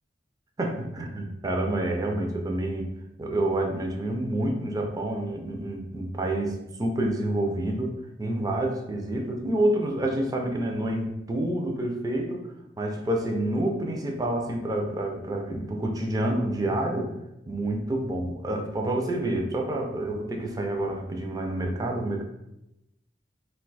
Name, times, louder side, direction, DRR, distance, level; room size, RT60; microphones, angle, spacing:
voice 1, 0.6-2.9 3.2-12.4 12.8-17.1 17.5-22.2, right 1 dB, 20° right, 2 dB, 0.4 m, -28 dB
2.5 x 2.2 x 3.9 m, 0.89 s
head